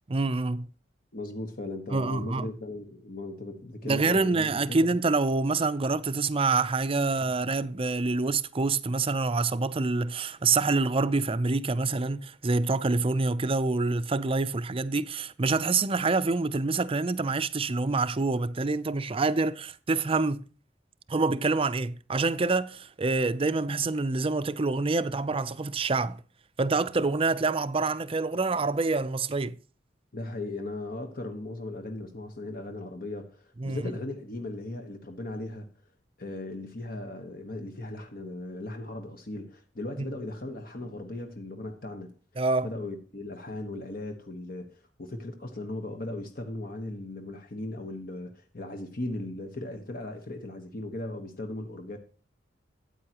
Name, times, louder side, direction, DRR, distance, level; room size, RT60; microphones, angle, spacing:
voice 1, 0.1-0.7 1.9-2.5 3.8-20.4 21.1-26.2 26.6-29.6 33.6-33.8 40.0-40.1 42.4-42.7, right 3 dB, 30° right, 0.5 m, -26 dB
voice 2, 1.1-4.8 30.1-35.7 36.2-42.1 42.6-44.7 45.0-52.0, left 2 dB, 50° left, 1.3 m, -37 dB
13.5 x 9.0 x 3.0 m
head